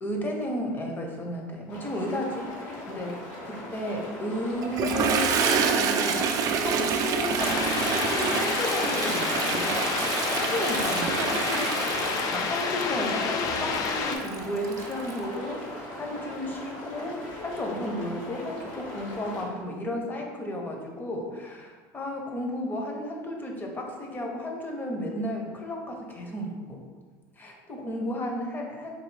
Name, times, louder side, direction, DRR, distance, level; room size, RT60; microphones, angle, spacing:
voice 1, 0.0-11.8 12.3-26.8 27.4-28.9, left 1 dB, 25° left, 1 dB, 0.7 m, -33 dB
sound 1, 1.7-19.5, left 1 dB, 65° left, 1.2 m, -40 dB
Toilet flush, 4.6-15.2, right 6 dB, 50° right, 0.4 m, -28 dB
sound 2, 7.4-14.2, left 5 dB, 50° left, 0.4 m, -29 dB
3.9 x 2.8 x 3.2 m, 1.4 s
supercardioid pair, 110°, 8 cm